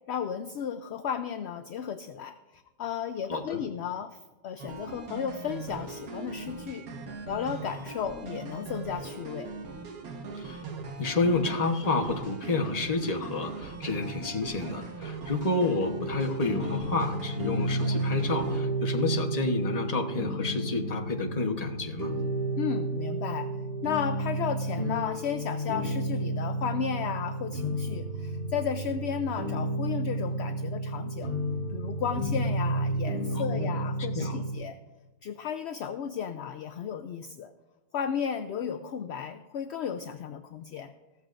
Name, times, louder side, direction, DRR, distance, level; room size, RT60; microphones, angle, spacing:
voice 1, 0.1-6.9 7.3-9.5 22.6-23.5 23.8-31.3 31.7-34.8 35.2-37.5 37.9-40.9, left 7 dB, 65° left, 9 dB, 0.7 m, -34 dB
voice 2, 3.3-3.6 10.3-10.6 11.0-22.1 33.3-33.8 34.1-34.4, left 3 dB, 30° left, 3 dB, 1.1 m, -30 dB
sound 1, 4.6-18.6, right 4 dB, 80° right, 1.7 m, -40 dB
sound 2, 15.9-34.5, right 1 dB, 35° right, 1.8 m, -31 dB
15.5 x 13.5 x 2.6 m, 1.1 s
omnidirectional pair, 1.5 m